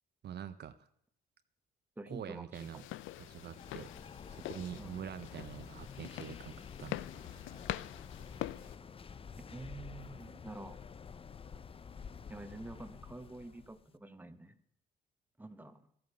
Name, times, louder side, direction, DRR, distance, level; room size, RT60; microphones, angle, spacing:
voice 1, 0.2-0.9 2.1-2.8 3.2-3.9 4.3-7.6, right 9 dB, 55° right, 11 dB, 0.6 m, -46 dB
voice 2, 2.0-2.9 4.8-4.9 9.4-10.8 12.3-14.6 15.4-15.9, right 2 dB, 10° right, 9 dB, 1.0 m, -48 dB
sound 1, 2.5-8.8, left 15 dB, 85° left, 0.4 m, -44 dB
sound 2, 3.0-13.9, left 6 dB, 30° left, 0.5 m, -50 dB
13.0 x 7.8 x 6.8 m, 0.76 s
cardioid pair, 90°, 20 cm